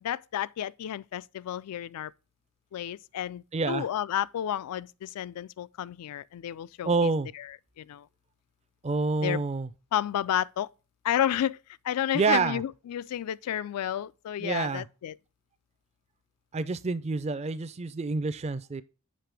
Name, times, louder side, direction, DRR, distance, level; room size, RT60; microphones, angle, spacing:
voice 1, 0.0-2.1 2.7-7.1 7.4-7.5 7.8-8.1 9.2-9.4 9.9-10.7 11.0-11.6 11.8-15.2, left 10 dB, 85° left, 0.3 m, -31 dB
voice 2, 3.5-3.9 6.8-7.3 8.8-9.7 12.1-12.6 14.4-14.9 16.5-18.8, right 4 dB, 30° right, 0.4 m, -27 dB
7.6 x 5.6 x 3.3 m
head